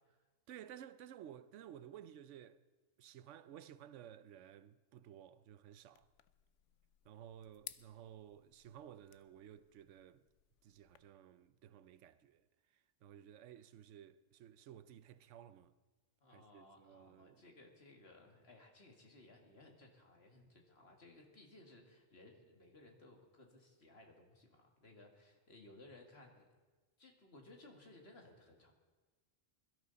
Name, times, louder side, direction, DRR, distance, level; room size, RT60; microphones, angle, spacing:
voice 1, 0.5-2.6 3.0-6.1 7.0-10.2 10.6-15.7 16.3-17.4, right 10 dB, 85° right, 1.0 m, -55 dB
sound 1, 5.9-11.0, left 11 dB, 85° left, 0.9 m, -59 dB
voice 2, 16.2-26.5 27.0-28.7, left 2 dB, 60° left, 2.2 m, -60 dB
22.0 x 12.5 x 4.0 m
omnidirectional pair, 1.2 m